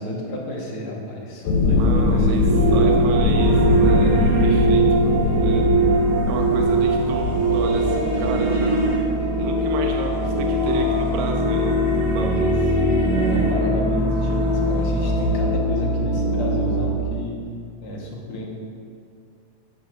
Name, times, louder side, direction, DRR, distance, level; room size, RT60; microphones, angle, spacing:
voice 1, 0.0-3.0 13.0-17.4 17.8-18.5, left 1 dB, 55° left, -2 dB, 1.9 m, -31 dB
sound 1, 1.5-9.3, left 3 dB, 85° left, 2.6 m, -21 dB
voice 2, 1.7-2.4 2.7-5.7 6.3-9.0 9.4-12.7, right 4 dB, 85° right, 2 dB, 2.1 m, -31 dB
sound 2, 2.5-16.9, right 1 dB, 40° right, 1.1 m, -22 dB
sound 3, 3.4-15.3, right 2 dB, 60° right, 3.8 m, -27 dB
13.0 x 9.5 x 2.5 m, 2.4 s
omnidirectional pair, 3.4 m